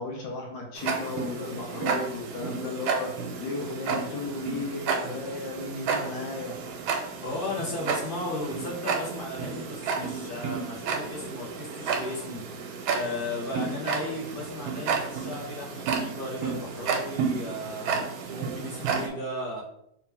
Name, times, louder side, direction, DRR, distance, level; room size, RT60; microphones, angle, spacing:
voice 1, 0.0-6.5, left 3 dB, 70° left, -1 dB, 1.4 m, -35 dB
Tick-tock, 0.8-19.1, right 5 dB, 90° right, 1.5 m, -32 dB
voice 2, 7.2-12.6 12.9-18.0 18.3-19.6, left 2 dB, 50° left, -5 dB, 0.6 m, -35 dB
3.5 x 3.0 x 3.3 m, 0.75 s
omnidirectional pair, 2.2 m